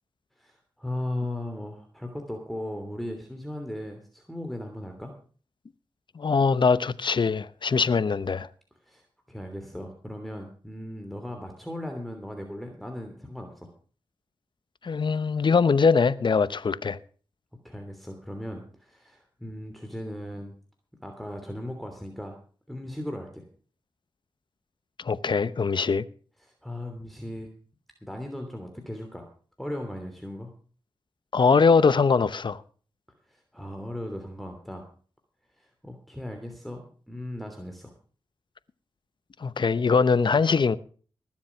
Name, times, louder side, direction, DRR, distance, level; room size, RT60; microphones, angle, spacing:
voice 1, 0.4-5.1 8.9-13.7 17.6-20.5 21.0-22.4 22.7-23.4 26.4-27.5 28.0-29.3 29.6-30.5 33.3-34.9 35.6-37.9, left 1 dB, ahead, 3.0 m, -37 dB
voice 2, 6.1-8.5 14.8-17.0 25.0-26.0 31.3-32.6 39.4-40.8, left 5 dB, 55° left, 0.9 m, -22 dB
19.5 x 7.5 x 5.9 m
cardioid pair, 40°, 9 cm